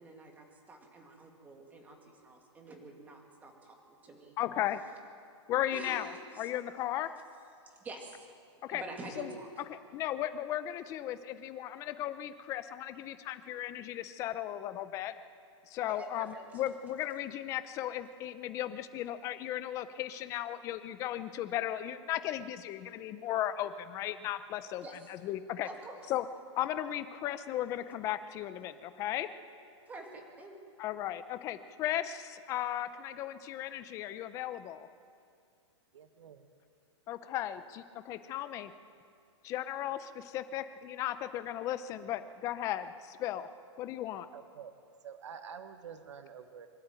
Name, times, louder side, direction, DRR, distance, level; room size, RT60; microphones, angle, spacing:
voice 1, 0.0-3.8 4.0-4.3 5.7-6.1 7.8-8.3 8.7-9.5 16.0-16.4 24.8-24.9 25.6-26.0 29.9-30.6, right 2 dB, 10° right, 2 dB, 2.3 m, -47 dB
voice 2, 4.4-4.8 5.5-7.1 8.6-8.8 9.2-9.3 9.7-15.1 15.7-25.7 26.1-26.3 26.6-29.3 30.8-34.9 37.1-38.7 39.4-43.5 43.8-44.3, left 12 dB, 20° left, 12 dB, 0.7 m, -36 dB
voice 3, 35.9-36.5 44.3-44.8 45.0-46.7, right 7 dB, 75° right, 8 dB, 1.6 m, -48 dB
24.0 x 12.0 x 9.1 m, 2.4 s
hypercardioid pair, 165°, 15 cm